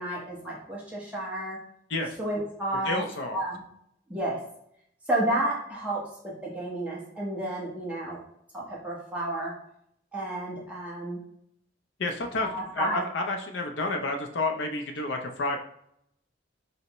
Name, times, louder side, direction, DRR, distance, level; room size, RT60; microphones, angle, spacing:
voice 1, 0.0-1.6 2.2-3.0 3.3-3.6 4.1-4.4 5.1-8.2 8.5-9.5 10.1-11.2 12.4-13.0, right 1 dB, 5° right, -5 dB, 0.9 m, -31 dB
voice 2, 2.8-3.4 12.0-15.6, left 2 dB, 70° left, 4 dB, 0.5 m, -30 dB
5.3 x 2.1 x 3.0 m, 0.75 s
head